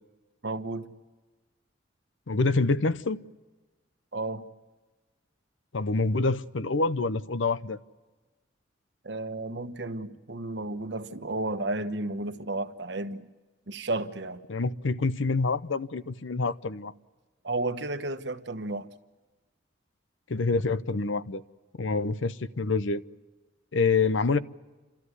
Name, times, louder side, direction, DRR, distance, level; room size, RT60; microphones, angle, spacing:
voice 1, 0.4-0.9 4.1-4.4 9.0-13.3 13.7-14.4 17.4-18.9, right 2 dB, 60° right, 1.1 m, -32 dB
voice 2, 2.3-3.2 5.7-7.8 14.5-16.9 20.3-21.4 21.8-23.0 23.7-24.4, left 3 dB, 80° left, 0.7 m, -26 dB
30.0 x 13.5 x 9.8 m
head